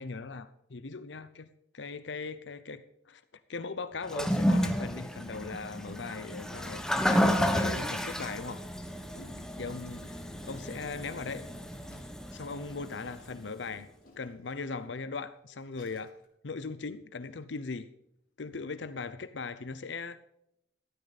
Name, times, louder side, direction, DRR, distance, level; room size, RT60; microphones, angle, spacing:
voice 1, 0.0-1.5 1.7-3.2 3.5-8.6 9.6-11.4 12.3-13.9 14.2-16.1 16.4-17.9 18.4-20.3, left 4 dB, 80° left, 13 dB, 0.7 m, -39 dB
Toilet flush, 4.0-13.3, equal, 5° left, 1.0 m, -31 dB
Gurgling, 5.5-8.1 8.8-12.4 13.0-14.5 15.1-15.2 15.6-16.3, equal, 50° left, 3.5 m, -55 dB
13.5 x 12.0 x 4.1 m, 0.78 s
head